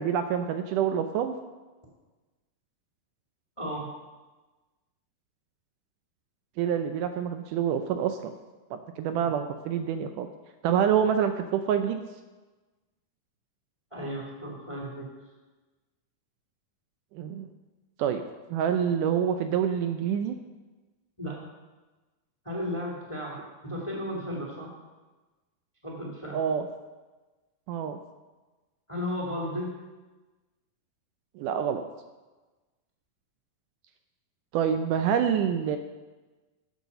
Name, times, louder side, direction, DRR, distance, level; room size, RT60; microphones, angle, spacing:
voice 1, 0.0-1.4 6.6-8.3 8.7-10.3 10.6-12.0 17.1-17.5 18.0-18.2 18.5-20.4 26.3-26.7 27.7-28.0 31.4-31.8 34.5-35.8, right 8 dB, 80° right, 8 dB, 2.0 m, -27 dB
voice 2, 3.6-3.9 9.1-9.3 13.9-15.1 21.2-21.4 22.4-23.4 23.6-24.7 25.8-26.4 28.9-29.7, equal, 15° left, -3 dB, 1.5 m, -34 dB
9.7 x 8.1 x 6.7 m, 1.2 s
omnidirectional pair, 4.0 m